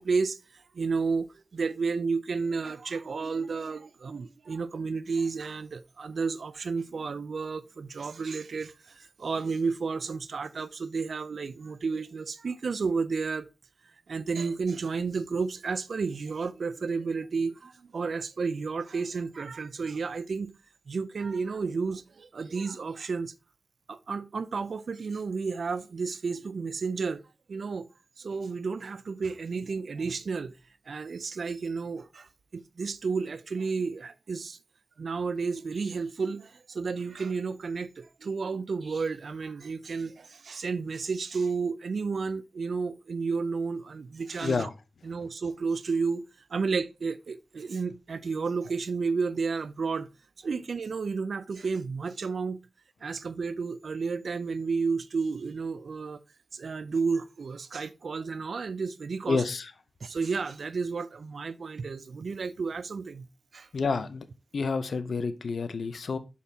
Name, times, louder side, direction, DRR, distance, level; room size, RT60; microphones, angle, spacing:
voice 1, 0.0-13.5 14.1-20.5 20.9-23.3 23.9-27.2 27.5-27.9 28.2-30.6 30.9-34.6 35.0-44.7 45.0-46.2 46.5-50.1 50.4-52.6 53.0-56.2 56.5-59.4 60.0-63.7, right 4 dB, 75° right, 0.4 m, -32 dB
sound 1, 35.7-36.2 38.8-39.3, right 1 dB, 45° right, 3.7 m, -54 dB
voice 2, 44.4-44.7 59.3-59.7 63.7-64.3 64.5-66.2, left 4 dB, 80° left, 0.6 m, -29 dB
6.2 x 5.6 x 2.8 m
wide cardioid pair, 70°, 0 cm